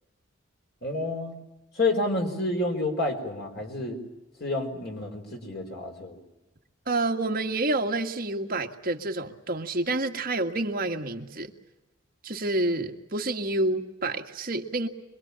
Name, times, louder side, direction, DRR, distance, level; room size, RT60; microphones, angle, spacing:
voice 1, 0.8-1.4 1.7-4.0 4.4-6.2, left 2 dB, 50° left, 3 dB, 5.2 m, -29 dB
voice 2, 6.9-11.5 12.2-14.9, right 2 dB, 45° right, 3 dB, 1.8 m, -28 dB
25.5 x 24.0 x 8.8 m, 0.98 s
head